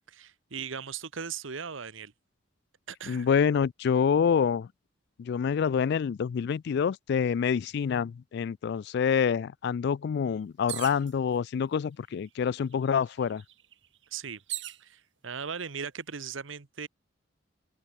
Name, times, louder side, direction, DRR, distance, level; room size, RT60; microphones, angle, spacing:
voice 1, 0.1-2.1 2.9-3.3 14.1-14.4 14.8-16.9, right 6 dB, 85° right, 1.1 m, -38 dB
voice 2, 3.1-4.7 5.2-13.4, left 7 dB, 55° left, 0.3 m, -27 dB
sound 1, 10.7-11.1 12.0-12.1 12.4-14.8 15.6-16.1, right 15 dB, 65° right, 4.2 m, -40 dB
head